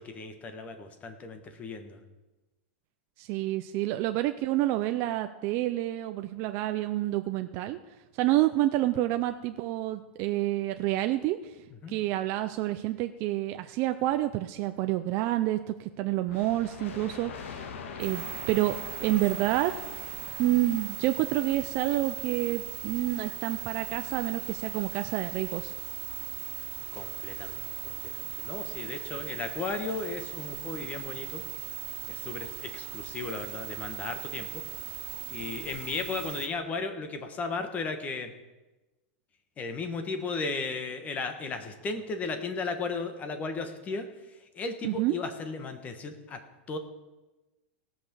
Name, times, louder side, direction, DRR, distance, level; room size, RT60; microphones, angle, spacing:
voice 1, 0.0-2.0 11.8-11.9 26.9-31.4 32.1-34.6 35.3-38.3 39.6-46.4 46.7-46.8, left 4 dB, 20° left, 8 dB, 1.3 m, -35 dB
voice 2, 3.2-7.8 8.2-11.6 11.9-17.7 18.0-19.7 20.4-25.7 44.8-45.1, right 15 dB, 40° right, 8 dB, 0.5 m, -28 dB
sound 1, 16.3-21.8, left 5 dB, 80° left, 1.5 m, -43 dB
sound 2, 18.0-36.5, right 14 dB, 60° right, 1.8 m, -39 dB
17.5 x 6.0 x 6.9 m, 1.1 s
supercardioid pair, 150°, 7 cm